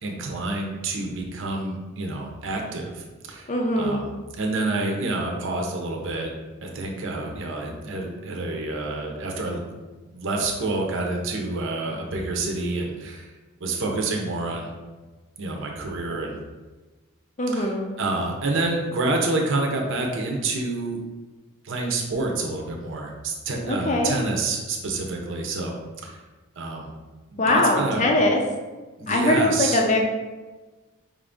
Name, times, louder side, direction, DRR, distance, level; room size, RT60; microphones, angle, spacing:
voice 1, 0.0-3.5 3.7-4.1 4.4-6.3 6.6-9.6 10.1-13.3 13.6-14.7 15.4-16.4 17.5-21.0 21.6-25.7 26.0-26.2 26.6-26.9 27.3-28.1 29.0-29.8, right 2 dB, 55° right, 1 dB, 0.7 m, -28 dB
voice 2, 3.5-4.0 17.4-17.9 23.7-24.2 27.4-28.4 29.1-30.0, left 1 dB, 30° left, 2 dB, 0.5 m, -21 dB
5.1 x 2.6 x 3.6 m, 1.2 s
head